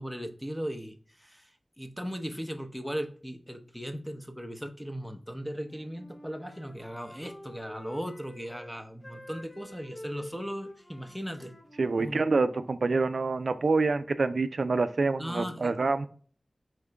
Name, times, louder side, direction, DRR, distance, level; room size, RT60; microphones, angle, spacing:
voice 1, 0.0-11.5 12.0-12.2 15.2-15.8, equal, ahead, 7 dB, 0.7 m, -38 dB
Wind instrument woodwind instrument, 5.6-8.7 9.0-12.8, left 1 dB, 45° left, 0.8 m, -47 dB
voice 2, 11.8-16.1, right 3 dB, 85° right, 11 dB, 0.3 m, -26 dB
4.4 x 3.6 x 3.3 m, 0.43 s
wide cardioid pair, 65°, 0 cm